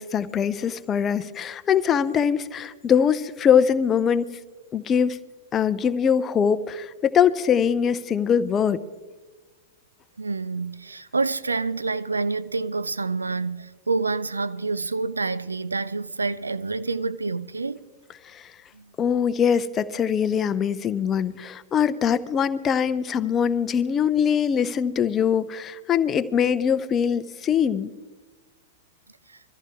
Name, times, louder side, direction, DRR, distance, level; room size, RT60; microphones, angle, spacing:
voice 1, 0.0-4.4 4.7-5.2 5.5-8.8 18.2-18.5 19.0-27.9, left 7 dB, 25° left, 0.6 m, -22 dB
voice 2, 10.2-17.8 18.7-18.9, right 3 dB, 80° right, 0.5 m, -27 dB
22.5 x 14.5 x 3.5 m
figure-of-eight pair, 95°, 0 cm